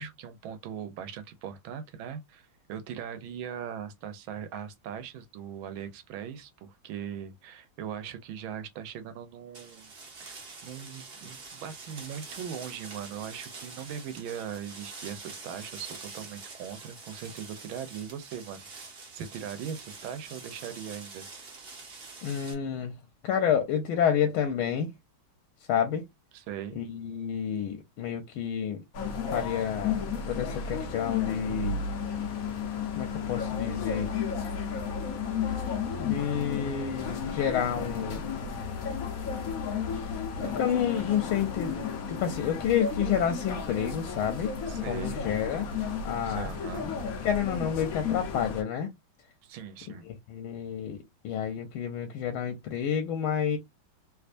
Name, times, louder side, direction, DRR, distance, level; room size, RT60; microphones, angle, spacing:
voice 1, 0.0-9.9 10.2-21.3 26.3-26.8 40.4-40.7 44.7-45.2 46.2-46.9 49.4-50.1, right 8 dB, 80° right, 1.4 m, -40 dB
sound 1, 9.5-22.5, right 4 dB, 40° right, 0.9 m, -45 dB
voice 2, 22.2-22.9 23.2-24.9 25.7-26.0 26.8-28.8 29.3-31.8 32.9-34.1 36.0-38.2 39.9-44.5 44.9-45.7 46.0-46.5 47.2-48.9 50.0-53.6, left 8 dB, 90° left, 1.5 m, -29 dB
sound 2, 28.9-48.6, left 6 dB, 55° left, 1.1 m, -33 dB
3.4 x 3.1 x 2.5 m
omnidirectional pair, 2.2 m